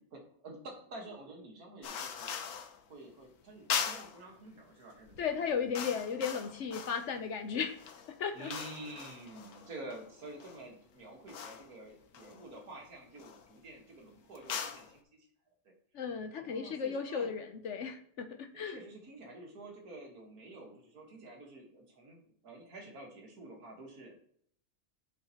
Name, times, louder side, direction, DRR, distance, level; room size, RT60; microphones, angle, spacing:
voice 1, 0.1-2.3 2.9-5.4 5.8-6.0 8.3-15.3 15.6-15.7 16.4-17.3 18.5-24.2, right 2 dB, 80° right, 1 dB, 2.1 m, -49 dB
sound 1, 1.8-2.8 3.7-4.2 5.0-5.2 5.5-7.2 7.6-10.6 11.3-11.7 12.1-12.7 13.2-13.5 14.3-14.9, left 7 dB, 90° left, 1.3 m, -40 dB
voice 2, 5.2-7.8 8.2-8.5 15.9-18.8, left 6 dB, 60° left, 7 dB, 1.0 m, -35 dB
7.5 x 7.2 x 2.9 m, 0.63 s
omnidirectional pair, 1.5 m